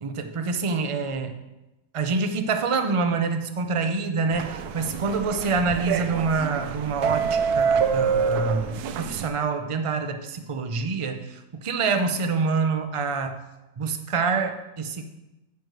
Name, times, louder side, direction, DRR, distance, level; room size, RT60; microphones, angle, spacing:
voice 1, 0.0-1.4 1.9-13.4 13.8-15.0, right 4 dB, 60° right, 7 dB, 0.3 m, -26 dB
sound 1, 4.3-9.3, right 6 dB, 80° right, 1.1 m, -26 dB
10.0 x 4.7 x 6.6 m, 0.99 s
omnidirectional pair, 1.6 m